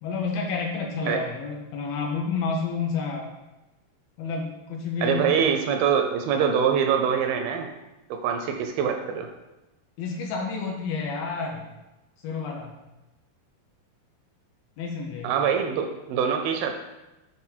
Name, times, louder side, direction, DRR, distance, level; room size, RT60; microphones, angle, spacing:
voice 1, 0.0-3.3 4.2-5.3 10.0-11.6 12.2-12.8 14.8-15.3, left 4 dB, 75° left, 0 dB, 2.3 m, -30 dB
voice 2, 5.0-7.7 8.1-9.3 15.2-16.7, right 7 dB, 80° right, 5 dB, 2.2 m, -24 dB
8.1 x 3.5 x 4.3 m, 1.0 s
omnidirectional pair, 4.5 m